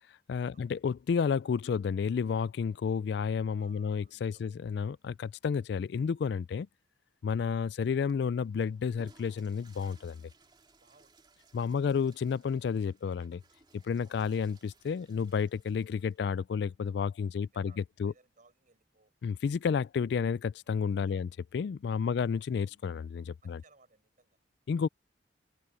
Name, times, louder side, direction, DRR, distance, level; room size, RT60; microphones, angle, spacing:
voice 1, 0.3-6.7 7.2-10.2 11.5-13.4 13.9-18.1 19.2-23.6 24.7-24.9, left 6 dB, 60° left, 0.3 m, -31 dB
voice 2, 3.5-4.6 10.8-11.7 17.5-19.1 20.8-21.3 21.8-22.3 23.4-24.4, right 3 dB, 45° right, 4.7 m, -66 dB
Water / Toilet flush, 8.0-16.3, right 3 dB, 25° right, 3.0 m, -63 dB
head